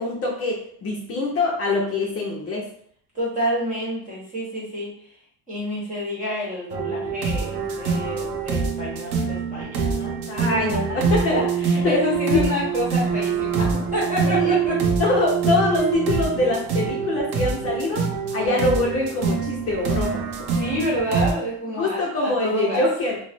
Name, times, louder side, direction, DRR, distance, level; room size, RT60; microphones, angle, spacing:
voice 1, 0.0-2.7 10.3-11.4 11.8-12.0 12.3-12.5 14.2-14.6 15.0-20.2 21.8-23.2, left 2 dB, 35° left, -3 dB, 0.6 m, -24 dB
voice 2, 3.1-4.9 5.5-10.2 10.5-14.9 18.3-18.7 20.5-22.8, equal, 20° right, -5 dB, 1.1 m, -28 dB
sound 1, 6.7-21.3, right 5 dB, 70° right, 0.7 m, -25 dB
3.1 x 2.1 x 4.2 m, 0.62 s
cardioid pair, 180°, 39 cm